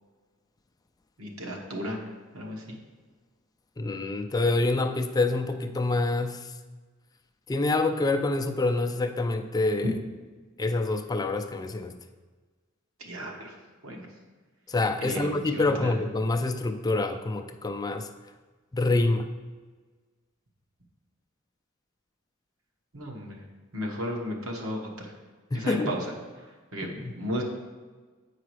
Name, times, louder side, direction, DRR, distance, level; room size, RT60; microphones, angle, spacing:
voice 1, 1.2-2.0 2.3-2.8 13.0-13.5 13.8-14.1 15.0-16.0 22.9-23.4 23.7-25.1 25.5-26.1 26.7-26.9 27.2-27.4, equal, 85° right, 0 dB, 1.4 m, -34 dB
voice 2, 3.8-6.4 7.5-9.9 10.6-12.0 14.7-18.1 18.7-19.3 25.5-26.0 26.8-27.1, left 2 dB, 20° left, 7 dB, 0.3 m, -26 dB
8.2 x 4.9 x 4.8 m, 1.4 s
head